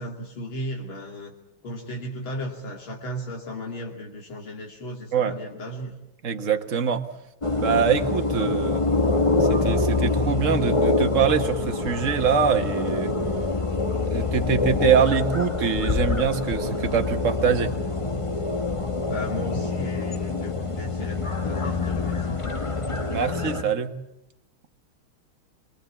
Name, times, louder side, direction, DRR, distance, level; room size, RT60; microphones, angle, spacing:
voice 1, 0.0-1.3 1.6-6.0 19.0-22.7, equal, 75° left, 0 dB, 3.4 m, -35 dB
voice 2, 6.2-7.1 7.6-8.9 9.4-13.1 14.1-17.7 23.1-23.9, right 7 dB, 40° right, 6 dB, 1.7 m, -24 dB
sound 1, 7.4-23.6, left 3 dB, 20° left, 1.2 m, -25 dB
25.0 x 23.0 x 8.6 m, 0.84 s
omnidirectional pair, 2.3 m